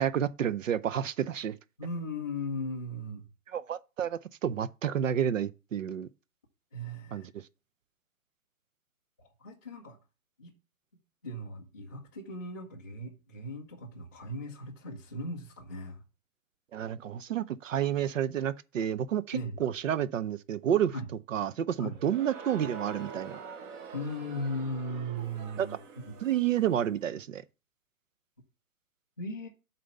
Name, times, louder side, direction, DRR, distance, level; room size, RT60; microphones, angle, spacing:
voice 1, 0.0-1.6 3.5-6.1 7.1-7.2 16.7-20.9 21.3-23.4 25.6-25.7 26.2-27.4, right 10 dB, 60° right, 0.7 m, -30 dB
voice 2, 1.8-3.3 6.7-7.3 9.2-10.0 10.4-10.5 11.2-16.0 19.3-19.6 20.9-21.1 21.8-22.0 23.9-25.8 26.1-26.2 29.2-29.5, left 1 dB, 15° left, 0.4 m, -37 dB
Crowd, 21.9-26.9, right 5 dB, 35° right, 1.2 m, -45 dB
7.6 x 4.1 x 6.6 m
hypercardioid pair, 135°, 45 cm